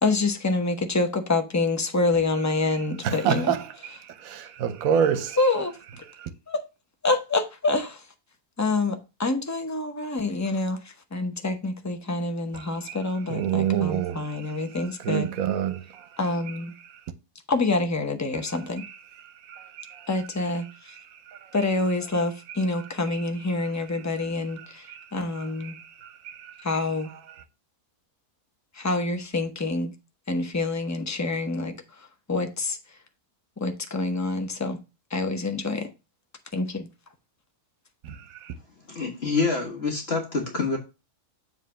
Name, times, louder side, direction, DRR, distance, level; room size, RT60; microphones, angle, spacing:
voice 1, 0.0-3.6 5.4-5.7 6.5-6.6 7.0-8.0 8.6-10.8 11.1-15.3 16.2-16.7 17.5-18.8 20.1-20.7 21.5-24.8 25.1-25.8 26.6-27.1 28.8-29.9 30.3-31.7 32.3-32.8 33.6-34.8 35.1-35.9 36.5-36.9, left 3 dB, 20° left, 0.5 m, -26 dB
voice 2, 3.0-3.6 4.2-5.4 12.9-13.0 13.3-14.2 15.0-15.8 19.5-20.0 24.9-25.0 26.3-26.4, right 8 dB, 70° right, 1.1 m, -25 dB
voice 3, 38.9-40.8, left 4 dB, 45° left, 1.4 m, -26 dB
7.4 x 3.3 x 5.6 m
omnidirectional pair, 1.6 m